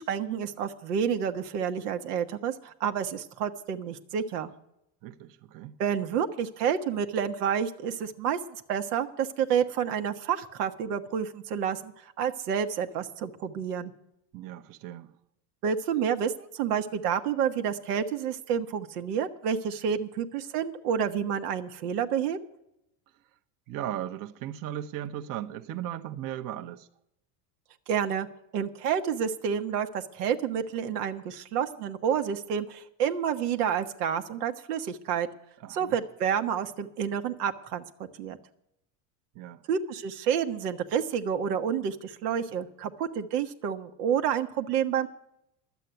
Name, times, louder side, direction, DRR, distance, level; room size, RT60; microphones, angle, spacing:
voice 1, 0.0-4.5 5.8-8.4 8.7-13.9 15.6-22.4 27.9-28.3 28.5-35.3 35.7-37.8 38.2-38.4 39.7-45.1, right 8 dB, 85° right, 1.2 m, -29 dB
voice 2, 5.0-5.8 14.3-15.1 23.7-26.9 35.6-36.0 39.3-39.6, right 11 dB, 45° right, 0.9 m, -37 dB
11.5 x 8.3 x 9.1 m
supercardioid pair, 110°, 45 cm